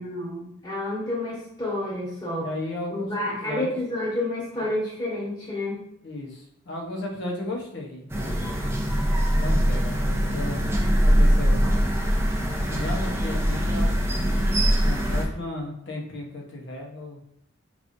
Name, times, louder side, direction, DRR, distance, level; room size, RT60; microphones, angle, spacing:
voice 1, 0.0-2.5 2.9-5.8, left 1 dB, 20° left, -7 dB, 1.6 m, -29 dB
voice 2, 2.4-3.7 6.0-8.6 9.4-10.6 11.0-11.7 12.7-17.2, left 1 dB, 60° left, 0 dB, 1.0 m, -35 dB
sound 1, 8.1-15.2, equal, 15° right, 0.5 m, -22 dB
5.1 x 3.3 x 2.6 m, 0.75 s
head